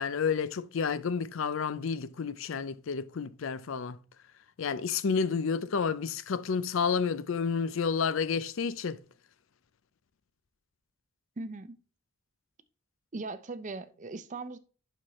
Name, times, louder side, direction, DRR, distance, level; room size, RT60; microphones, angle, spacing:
voice 1, 0.0-4.0 4.6-9.0, left 5 dB, 65° left, 0.5 m, -30 dB
voice 2, 11.4-11.8 13.1-14.6, right 3 dB, 35° right, 0.5 m, -39 dB
11.0 x 4.4 x 3.0 m
head